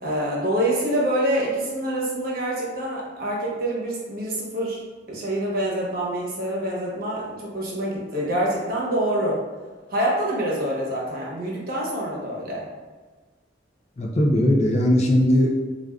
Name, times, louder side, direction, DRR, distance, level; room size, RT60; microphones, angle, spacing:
voice 1, 0.0-4.8 5.1-9.4 9.9-12.6, right 1 dB, 50° right, -4 dB, 1.0 m, -26 dB
voice 2, 14.0-15.6, left 1 dB, 35° left, -1 dB, 0.4 m, -19 dB
4.9 x 2.5 x 2.3 m, 1.4 s
head